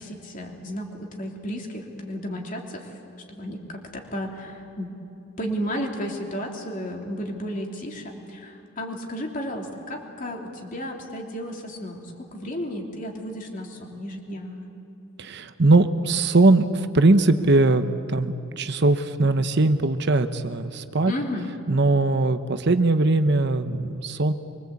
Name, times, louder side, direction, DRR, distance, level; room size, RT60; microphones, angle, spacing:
voice 1, 0.0-2.9 3.3-4.9 5.4-14.7 21.0-21.5, equal, 40° left, 1 dB, 3.2 m, -33 dB
voice 2, 15.2-21.1 21.7-24.3, right 2 dB, 55° right, 10 dB, 0.9 m, -20 dB
24.5 x 24.0 x 8.4 m, 3.0 s
head